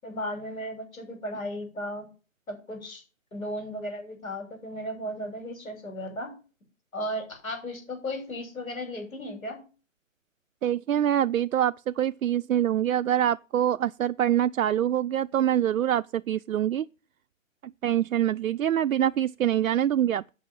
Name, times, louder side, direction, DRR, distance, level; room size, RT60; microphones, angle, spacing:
voice 1, 0.0-2.0 2.5-3.0 3.3-6.4 6.9-9.6, equal, 80° left, 6.5 m, -35 dB
voice 2, 10.6-16.9 17.8-20.2, right 10 dB, 80° right, 0.5 m, -25 dB
9.0 x 6.2 x 7.1 m
hypercardioid pair, 160°, 40 cm